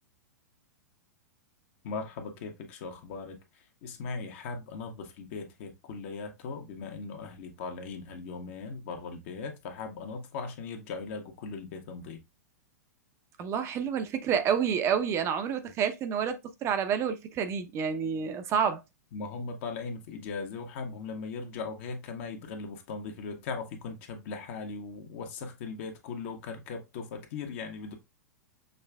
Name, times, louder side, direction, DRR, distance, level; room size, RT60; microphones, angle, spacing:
voice 1, 1.8-3.4 3.8-12.2 19.1-27.9, left 4 dB, 50° left, 1.2 m, -39 dB
voice 2, 13.4-18.8, right 7 dB, 30° right, 0.8 m, -29 dB
6.6 x 3.2 x 2.3 m
figure-of-eight pair, 100°, 9 cm